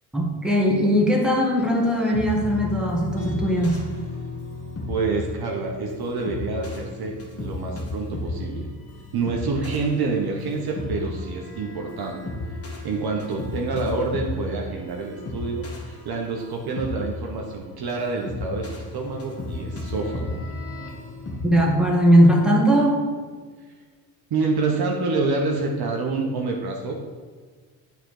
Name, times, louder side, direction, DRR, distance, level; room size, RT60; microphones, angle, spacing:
voice 1, 0.1-3.8 21.4-23.0, equal, ahead, -2 dB, 1.9 m, -19 dB
sound 1, 1.6-21.5, left 2 dB, 30° left, 1.6 m, -34 dB
voice 2, 4.9-8.7 9.1-12.2 12.8-20.4 24.3-26.9, right 3 dB, 50° right, 0 dB, 1.2 m, -27 dB
8.8 x 4.0 x 4.9 m, 1.5 s
supercardioid pair, 75°, 49 cm